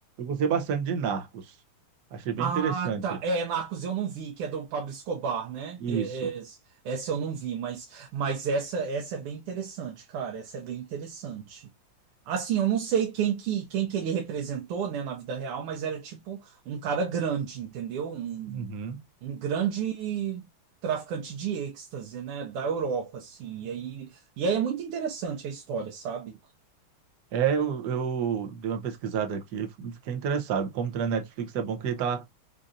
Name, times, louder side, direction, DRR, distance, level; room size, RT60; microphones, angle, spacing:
voice 1, 0.2-1.4 2.1-3.0 5.8-6.3 18.5-19.0 27.3-32.2, right 7 dB, 60° right, 1.2 m, -29 dB
voice 2, 2.4-6.6 6.8-11.7 12.3-18.7 19.2-20.4 20.8-26.3, right 6 dB, 85° right, 1.6 m, -31 dB
5.2 x 2.7 x 2.5 m
omnidirectional pair, 2.4 m